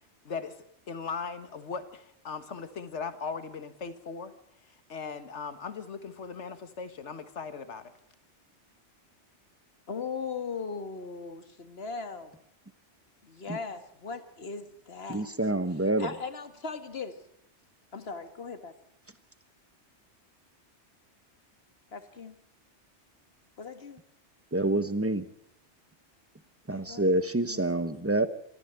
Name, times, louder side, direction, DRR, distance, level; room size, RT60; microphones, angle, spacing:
voice 1, 0.2-0.6 0.9-4.3 4.9-7.9, left 5 dB, 80° left, 12 dB, 1.7 m, -38 dB
voice 2, 9.9-12.4 13.2-15.3 16.0-17.2 17.9-18.7 21.9-22.4 23.6-24.0 26.7-27.2 27.4-27.7, left 5 dB, 60° left, 10 dB, 1.9 m, -38 dB
voice 3, 15.1-16.1 24.5-25.3 26.7-28.3, right 2 dB, 15° right, 13 dB, 1.0 m, -27 dB
23.5 x 14.5 x 8.0 m, 0.72 s
omnidirectional pair, 1.2 m